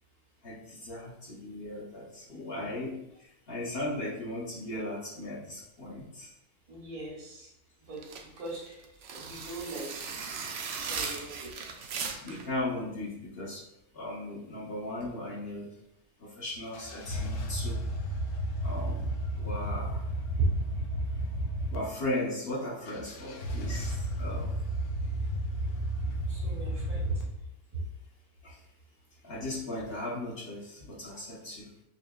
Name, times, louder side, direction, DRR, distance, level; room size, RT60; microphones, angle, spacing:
voice 1, 0.4-3.1 3.5-6.3 12.2-13.6 13.9-15.7 16.2-17.8 18.6-19.1 19.4-20.1 21.7-24.6 28.4-28.6 29.2-31.7, left 1 dB, 45° left, -5 dB, 0.9 m, -37 dB
voice 2, 6.7-7.5 7.8-8.1 8.4-8.9 9.2-10.5 10.7-11.5 26.3-27.2 27.7-27.8, right 1 dB, 85° right, -3 dB, 1.7 m, -40 dB
sound 1, 8.0-12.5, right 5 dB, 65° right, 0.8 m, -38 dB
sound 2, 16.7-21.8 22.9-27.2, right 1 dB, 80° left, 1.1 m, -33 dB
5.6 x 2.7 x 2.3 m, 0.82 s
omnidirectional pair, 1.6 m